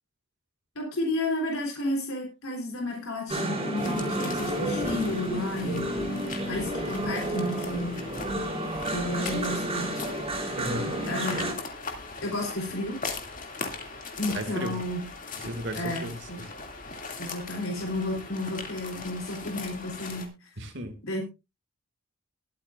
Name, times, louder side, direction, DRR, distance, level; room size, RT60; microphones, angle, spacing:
voice 1, 0.8-5.9 6.5-8.0 8.9-10.1 11.1-11.5 12.2-13.0 14.2-15.0 15.7-16.4 17.2-20.5 21.0-21.2, left 1 dB, 75° left, 3.7 m, -32 dB
sound 1, 3.3-11.5, right 1 dB, 25° right, 4.0 m, -31 dB
sound 2, 3.8-20.3, left 3 dB, 35° left, 2.5 m, -39 dB
voice 2, 10.6-11.0 14.3-14.8 15.4-16.5 20.6-21.0, right 1 dB, 55° right, 2.2 m, -35 dB
21.5 x 8.5 x 2.5 m
head